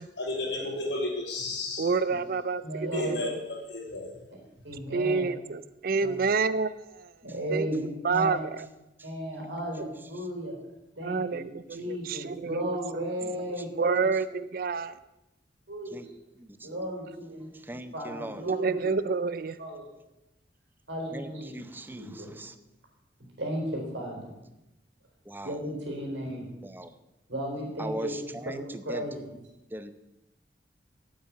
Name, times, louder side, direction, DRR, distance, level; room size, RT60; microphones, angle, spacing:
voice 1, 0.2-1.9 2.9-4.2, left 2 dB, 85° left, -2 dB, 3.9 m, -33 dB
voice 2, 1.8-2.6 2.9-3.3 4.9-7.1 7.5-7.7 8.0-8.7 11.0-13.0 13.4-13.5 13.8-14.9 18.5-19.6, right 4 dB, 55° right, 15 dB, 0.4 m, -28 dB
voice 3, 2.6-3.2 4.6-5.3 6.0-6.2 7.2-8.4 9.0-10.6 11.0-11.4 11.7-14.1 15.7-16.1 16.6-17.5 17.9-18.8 19.6-19.8 20.9-22.3 23.2-24.3 25.4-26.4 27.3-29.2, equal, 90° right, 0 dB, 4.3 m, -35 dB
voice 4, 16.4-16.7 17.5-18.4 21.1-22.5 25.3-25.6 26.6-26.9 27.8-28.6 28.9-29.0 29.7-30.0, right 1 dB, 10° right, 11 dB, 0.6 m, -39 dB
8.6 x 8.5 x 8.7 m, 0.95 s
head